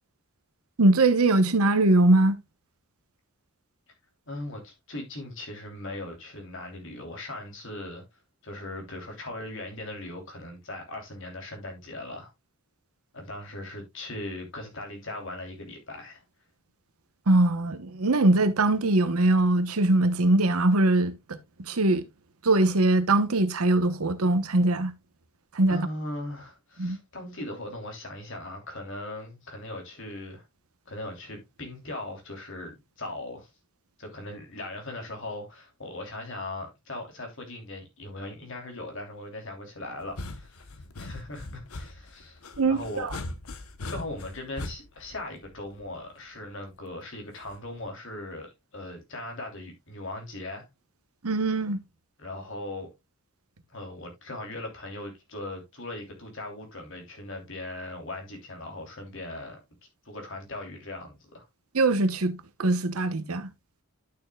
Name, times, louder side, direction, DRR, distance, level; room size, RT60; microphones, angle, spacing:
voice 1, 0.8-2.3 17.3-22.0 22.4-24.9 25.5-25.9 26.8-27.0 42.6-43.1 51.2-51.8 61.7-63.5, right 2 dB, 85° right, 1.0 m, -22 dB
voice 2, 4.3-8.0 8.4-12.3 13.1-16.2 25.7-30.4 30.9-33.5 34.0-42.4 42.7-43.1 43.9-50.7 52.2-52.9 53.7-59.6 60.0-61.5, left 1 dB, 60° left, 3.0 m, -39 dB
sound 1, 40.0-46.1 47.5-47.9, left 2 dB, 85° left, 1.0 m, -40 dB
11.5 x 6.5 x 2.3 m
head